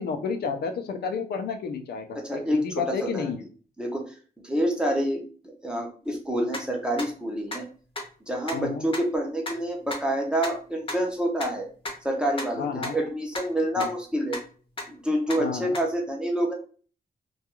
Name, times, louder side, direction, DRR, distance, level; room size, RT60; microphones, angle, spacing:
voice 1, 0.0-3.4 8.5-8.8 12.6-13.0 13.8-13.9 15.4-15.7, left 6 dB, 90° left, 6 dB, 0.4 m, -31 dB
voice 2, 2.1-3.3 3.8-4.1 4.4-7.6 8.3-11.7 12.0-14.4 14.9-16.5, right 1 dB, 5° right, 1 dB, 0.5 m, -27 dB
sound 1, 6.5-6.6 7.0-7.1 7.5-7.6 8.0-8.1 8.5-8.6 8.9-9.0 9.4-9.5 9.9-10.0 10.4-10.5 10.9-11.0 11.4-11.5 11.9-12.0 12.4-12.5 12.8-12.9 13.3-13.4 13.8-13.9 14.3-14.4 14.8-14.9 15.3-15.4 15.7-15.8, left 2 dB, 35° left, 0.6 m, -32 dB
2.3 x 2.3 x 2.8 m, 0.40 s
wide cardioid pair, 180°, 16 cm